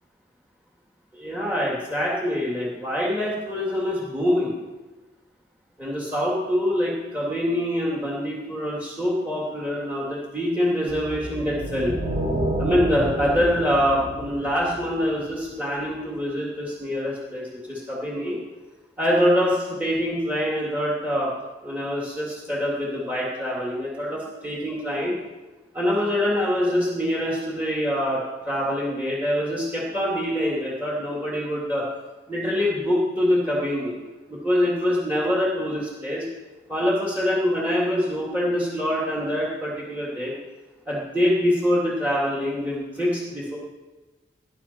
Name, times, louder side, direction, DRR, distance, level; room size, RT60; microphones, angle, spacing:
voice 1, 1.1-4.5 5.8-11.9 12.6-18.4 19.0-21.3 21.6-25.1 25.7-31.8 32.3-34.0 34.3-36.3 36.7-40.3 40.9-43.6, equal, 10° right, -5 dB, 2.7 m, -25 dB
sound 1, 10.9-15.3, right 1 dB, 60° right, 4.2 m, -29 dB
18.5 x 10.5 x 4.5 m, 1.2 s
head